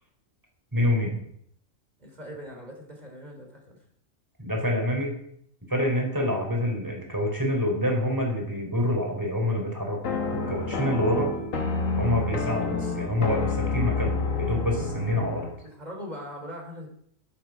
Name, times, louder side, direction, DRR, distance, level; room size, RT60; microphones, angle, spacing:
voice 1, 0.7-1.1 4.4-5.2 5.7-10.0 10.3-11.3 12.0-15.5, left 1 dB, 15° right, 0 dB, 4.7 m, -27 dB
voice 2, 2.0-3.8 15.6-16.9, equal, 30° right, 1 dB, 3.8 m, -40 dB
sound 1, 10.0-15.6, left 3 dB, 85° left, 1.9 m, -29 dB
12.0 x 12.0 x 6.1 m, 0.69 s
omnidirectional pair, 1.3 m